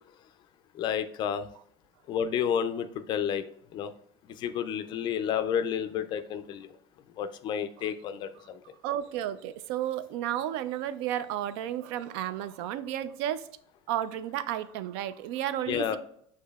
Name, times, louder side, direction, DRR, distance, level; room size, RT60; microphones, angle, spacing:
voice 1, 0.7-1.5 2.1-3.5 3.7-3.9 4.4-6.7 7.2-8.6 15.7-16.0, left 8 dB, 35° left, 10 dB, 0.4 m, -30 dB
voice 2, 8.8-13.5 13.9-16.0, right 11 dB, 70° right, 14 dB, 0.4 m, -32 dB
8.3 x 2.8 x 2.3 m, 0.68 s
cardioid pair, 155°, 14 cm